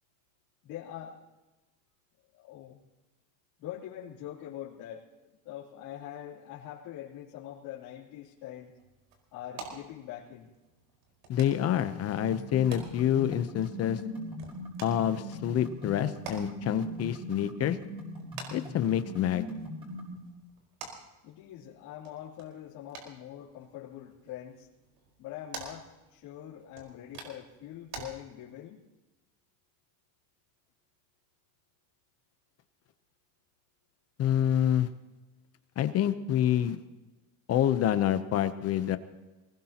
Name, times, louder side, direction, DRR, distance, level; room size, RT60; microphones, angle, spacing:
voice 1, 0.6-1.2 2.3-2.8 3.6-5.1 5.4-8.7 9.3-10.5 21.2-24.7 25.2-28.8, left 11 dB, 65° left, -7 dB, 3.3 m, -43 dB
sound 1, 8.2-28.1, right 4 dB, 75° right, 4.9 m, -50 dB
voice 2, 11.3-14.0 14.8-17.8 18.5-19.4 34.2-34.9 35.8-36.8 37.5-39.0, left 10 dB, 35° left, 11 dB, 0.8 m, -27 dB
sound 2, 12.2-20.2, left 1 dB, 15° right, 5.6 m, -41 dB
22.5 x 20.0 x 3.0 m, 1.1 s
cardioid pair, 150°, 42 cm